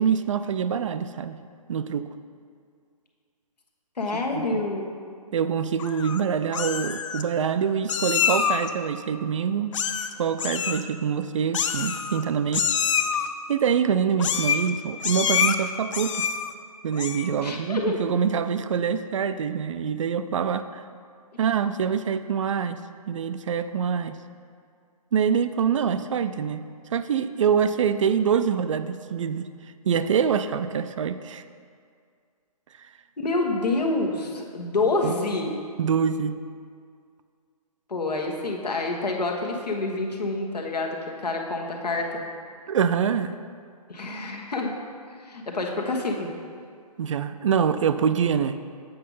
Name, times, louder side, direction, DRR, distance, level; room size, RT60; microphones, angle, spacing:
voice 1, 0.0-1.4 1.7-2.1 4.1-4.6 5.3-9.8 10.2-12.7 13.5-16.3 16.8-20.8 21.4-24.2 25.1-26.7 26.9-29.5 29.9-31.4 35.0-35.1 35.8-36.4 42.7-43.4 47.0-48.7, right 7 dB, 50° right, 12 dB, 0.4 m, -25 dB
voice 2, 4.0-5.0 17.4-18.0 33.2-35.5 37.9-42.2 43.9-44.7 45.2-46.3, left 2 dB, 85° left, 1 dB, 1.3 m, -27 dB
Meow, 5.8-6.2 6.5-7.2 7.9-8.7 9.7-10.1 10.4-10.8 11.5-12.2 12.5-13.3 14.2-14.7 15.0-15.6 15.9-16.5 16.9-17.4, left 7 dB, 50° left, 0.5 m, -26 dB
7.8 x 5.0 x 5.4 m, 2.2 s
figure-of-eight pair, 140°, 20 cm